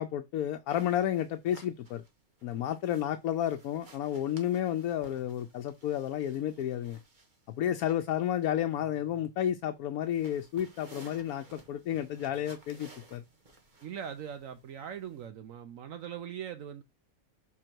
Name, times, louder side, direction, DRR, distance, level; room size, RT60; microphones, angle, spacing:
voice 1, 0.0-2.0 2.4-7.0 7.6-13.2, left 11 dB, 80° left, 1.1 m, -31 dB
sound 1, 0.7-15.3, right 2 dB, 35° right, 1.3 m, -57 dB
voice 2, 13.8-16.8, right 8 dB, 70° right, 1.1 m, -41 dB
6.3 x 3.7 x 4.5 m
omnidirectional pair, 1.5 m